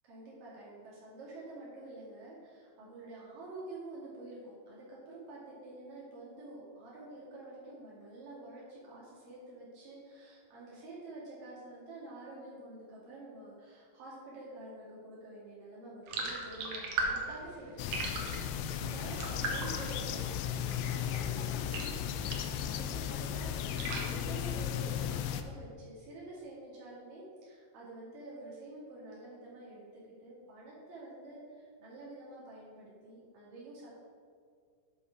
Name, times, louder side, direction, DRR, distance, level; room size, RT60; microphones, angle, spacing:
voice 1, 0.0-23.5 23.9-33.9, right 2 dB, 55° right, -7 dB, 3.7 m, -48 dB
sound 1, 16.1-22.6 23.0-25.0, right 3 dB, 80° right, 1.6 m, -39 dB
sound 2, 17.8-25.4, left 9 dB, 85° left, 2.8 m, -35 dB
12.0 x 5.3 x 4.8 m, 2.1 s
omnidirectional pair, 5.0 m